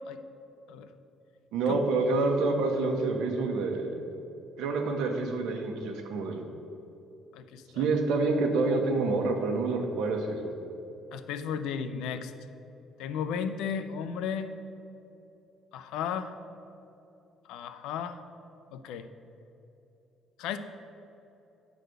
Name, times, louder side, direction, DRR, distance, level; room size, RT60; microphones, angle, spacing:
voice 1, 1.5-3.9 4.6-6.4 7.7-10.5, right 3 dB, 90° right, 3 dB, 1.1 m, -27 dB
voice 2, 7.3-7.8 11.1-12.3 13.0-14.5 15.7-16.3 17.5-18.2 18.7-19.0 20.4-20.6, left 7 dB, 90° left, 10 dB, 0.5 m, -34 dB
9.3 x 4.1 x 6.5 m, 2.9 s
cardioid pair, 165°, 0 cm